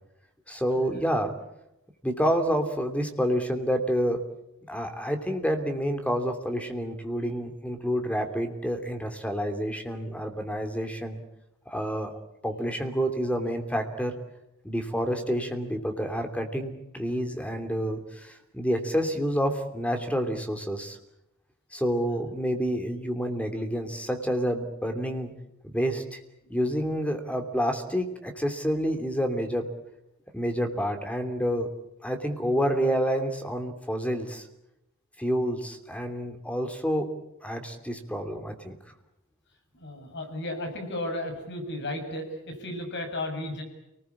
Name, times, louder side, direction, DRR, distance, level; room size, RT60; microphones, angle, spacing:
voice 1, 0.5-1.3 2.0-4.2 4.7-11.2 11.7-12.1 12.4-14.1 14.6-21.0 21.7-25.3 25.6-26.2 26.5-29.6 30.3-31.7 32.0-34.5 35.2-37.1 37.4-38.8, equal, 5° left, 6 dB, 3.0 m, -28 dB
voice 2, 39.7-43.6, left 1 dB, 55° left, 4 dB, 6.9 m, -34 dB
29.0 x 20.0 x 8.5 m, 0.87 s
head